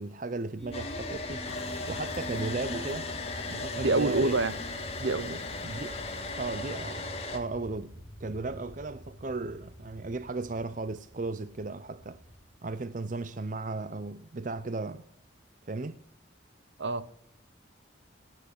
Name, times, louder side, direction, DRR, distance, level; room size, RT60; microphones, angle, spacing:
voice 1, 0.0-1.4 1.9-3.1 3.5-4.4 5.6-6.0 6.4-12.2 12.6-15.0 15.7-16.0, right 3 dB, 40° right, 0.6 m, -35 dB
sound 1, 0.6-13.5, equal, ahead, 4.3 m, -45 dB
Domestic sounds home sounds, 0.7-7.4, left 3 dB, 30° left, 2.0 m, -37 dB
sound 2, 1.4-7.2, left 3 dB, 65° left, 1.2 m, -46 dB
voice 2, 3.8-4.5 5.0-5.4 16.8-17.1, right 2 dB, 70° right, 1.0 m, -27 dB
18.5 x 9.1 x 8.0 m
head